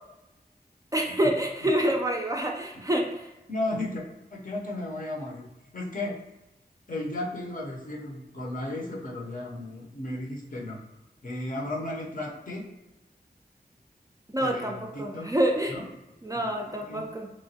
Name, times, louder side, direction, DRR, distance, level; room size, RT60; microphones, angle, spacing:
voice 1, 0.9-3.3 14.3-15.7 16.2-17.3, right 1 dB, 20° right, 1 dB, 0.4 m, -27 dB
voice 2, 3.5-4.0 4.3-5.5 5.7-6.1 6.9-10.8 11.2-12.6 14.4-15.3 15.7-15.9 16.3-17.0, left 1 dB, 55° left, -3 dB, 0.7 m, -34 dB
3.0 x 2.2 x 2.7 m, 0.98 s
wide cardioid pair, 65°, 17 cm